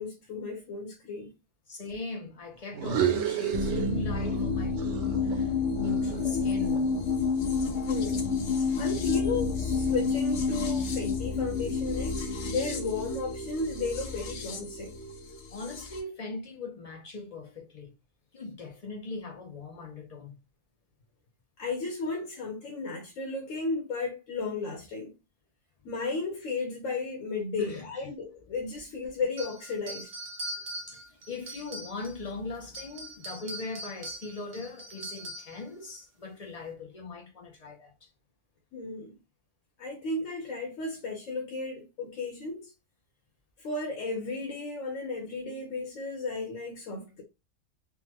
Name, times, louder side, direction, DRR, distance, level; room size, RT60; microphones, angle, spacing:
voice 1, 0.0-1.3 7.9-8.2 8.8-15.0 21.6-25.2 25.8-30.1 38.7-39.2 39.8-42.7 43.6-47.2, left 3 dB, 90° left, 1.2 m, -34 dB
voice 2, 1.7-7.0 15.5-17.9 18.3-20.4 27.6-27.9 30.9-38.1, left 3 dB, 45° left, 0.5 m, -40 dB
sound 1, 2.7-4.5 4.8-7.0, right 9 dB, 70° right, 0.9 m, -31 dB
sound 2, 3.5-16.0, left 4 dB, 70° left, 1.0 m, -29 dB
sound 3, 29.4-32.3 32.6-35.6, right 1 dB, 45° right, 0.7 m, -41 dB
3.5 x 2.2 x 2.9 m
omnidirectional pair, 1.3 m